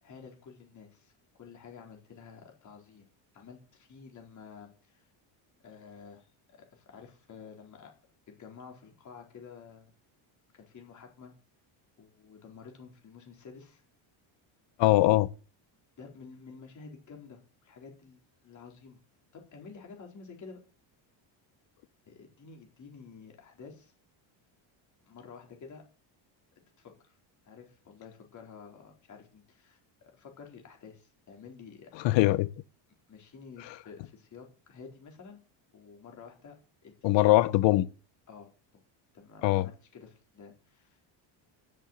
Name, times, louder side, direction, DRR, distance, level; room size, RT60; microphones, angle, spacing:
voice 1, 0.0-3.1 3.3-5.1 5.6-6.3 6.5-7.9 8.3-9.9 10.5-11.3 12.0-13.8 16.0-19.0 19.3-20.6 22.1-23.9 25.1-25.8 26.8-27.2 27.4-32.2 33.1-35.4 35.7-36.6 36.8-37.2 38.3-38.8 39.1-41.1, left 5 dB, 35° left, 4.3 m, -50 dB
voice 2, 14.8-15.3 32.0-32.5 37.0-37.9 39.4-39.7, left 17 dB, 65° left, 0.9 m, -22 dB
14.0 x 6.9 x 8.1 m
cardioid pair, 160°, 48 cm